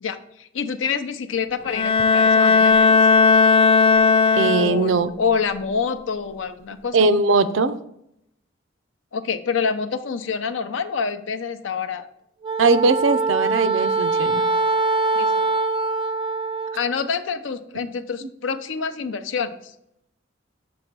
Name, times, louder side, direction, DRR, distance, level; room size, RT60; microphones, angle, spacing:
voice 1, 0.0-3.0 4.6-7.0 9.1-12.1 15.1-15.3 16.8-19.7, left 5 dB, 80° left, 9 dB, 0.6 m, -27 dB
Bowed string instrument, 1.7-5.1, left 4 dB, 30° left, 0.4 m, -16 dB
voice 2, 4.3-5.1 6.9-7.8 12.6-14.4, right 3 dB, 80° right, 12 dB, 0.5 m, -19 dB
Wind instrument woodwind instrument, 12.4-16.9, right 3 dB, 25° right, 0.5 m, -23 dB
6.9 x 3.1 x 6.0 m, 0.77 s
head